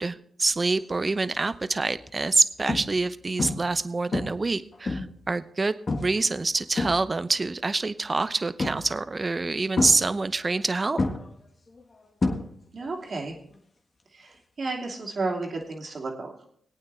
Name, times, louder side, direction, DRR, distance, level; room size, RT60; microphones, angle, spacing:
voice 1, 0.0-11.0, right 3 dB, 35° right, 14 dB, 0.7 m, -26 dB
sound 1, 1.1-1.4 2.0-2.1 2.7-3.1 3.4-3.8 4.1-5.3 5.9-6.2 6.5-7.4 8.6-9.1 9.8-10.6 11.0-12.9 13.1-13.5 15.6-15.7, left 2 dB, 45° left, 1.5 m, -29 dB
voice 2, 12.7-13.3 14.1-16.5, right 3 dB, 55° right, 1 dB, 2.6 m, -32 dB
21.0 x 8.8 x 3.3 m, 0.64 s
supercardioid pair, 45°, 0 cm